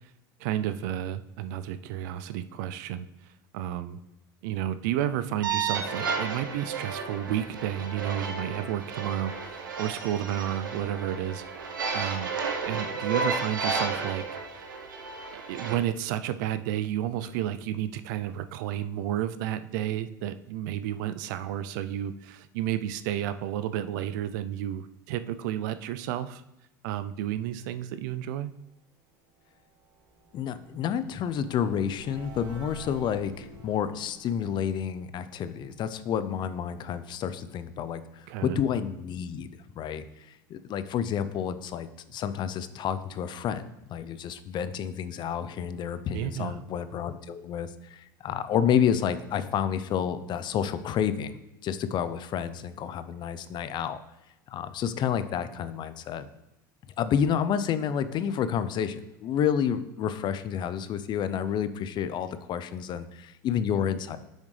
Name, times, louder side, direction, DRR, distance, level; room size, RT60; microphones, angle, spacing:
voice 1, 0.4-3.1 3.5-4.0 4.4-11.4 11.9-12.3 12.7-14.2 14.5-14.7 15.3-26.4 26.8-28.5 38.3-38.6 46.1-46.6, right 11 dB, 70° right, 12 dB, 0.5 m, -31 dB
sound 1, 5.4-15.7, right 4 dB, 90° right, 0.9 m, -32 dB
sound 2, 29.1-36.3, right 3 dB, 50° right, 1.7 m, -50 dB
voice 2, 30.3-39.5 39.8-54.0 54.5-56.3 57.0-64.2, left 8 dB, 45° left, 13 dB, 0.6 m, -30 dB
8.2 x 6.5 x 3.3 m, 0.92 s
hypercardioid pair, 80°, 10 cm